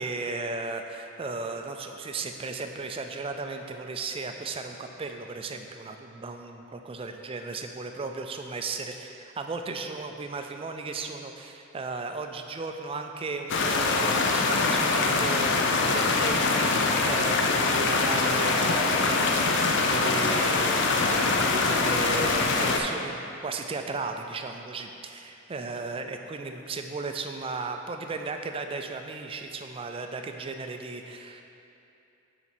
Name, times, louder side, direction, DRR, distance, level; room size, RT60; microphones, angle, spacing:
voice 1, 0.0-6.4 6.9-31.4, right 3 dB, 25° right, 5 dB, 0.4 m, -35 dB
sound 1, 13.5-22.8, left 3 dB, 60° left, 0.5 m, -24 dB
7.0 x 4.9 x 4.4 m, 2.7 s
head